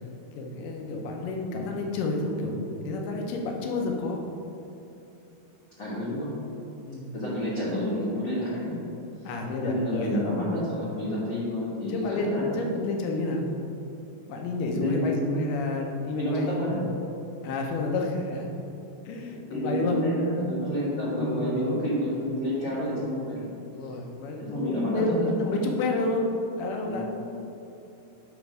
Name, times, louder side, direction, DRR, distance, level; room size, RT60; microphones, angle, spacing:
voice 1, 0.4-2.6 2.8-4.2 6.9-7.1 9.2-10.2 11.9-13.4 14.3-16.8 17.4-18.5 19.1-20.0 20.9-21.7 23.7-26.2 26.6-27.0, left 2 dB, 75° left, 1 dB, 2.3 m, -30 dB
voice 2, 5.8-6.3 7.1-8.7 9.2-9.3 9.6-12.7 14.7-15.2 16.2-16.8 19.5-23.5 24.4-25.3 26.8-27.0, equal, 50° left, -10 dB, 1.5 m, -29 dB
8.1 x 3.2 x 6.2 m, 2.9 s
omnidirectional pair, 4.2 m